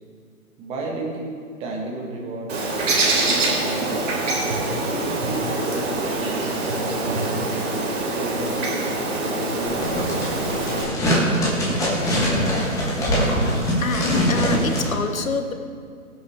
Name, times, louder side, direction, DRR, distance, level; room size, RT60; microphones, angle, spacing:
voice 1, 0.6-2.7 3.2-4.3 4.9-8.5 9.2-10.7, right 2 dB, 15° right, -1 dB, 1.5 m, -33 dB
Bird, 2.5-10.8, right 2 dB, 55° right, 3.7 m, -24 dB
sound 1, 9.7-14.9, equal, 5° left, 1.5 m, -22 dB
voice 2, 13.8-15.5, left 4 dB, 65° left, 7 dB, 1.3 m, -26 dB
23.0 x 7.8 x 3.6 m, 2.3 s
figure-of-eight pair, 145°, 44 cm